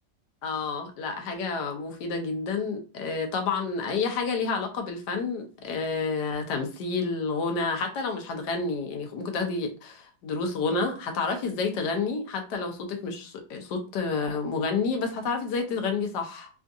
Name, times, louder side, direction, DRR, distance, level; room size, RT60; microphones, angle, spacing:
voice 1, 0.4-16.5, left 4 dB, 85° left, 4 dB, 1.3 m, -29 dB
3.6 x 2.4 x 2.6 m, 0.35 s
omnidirectional pair, 1.7 m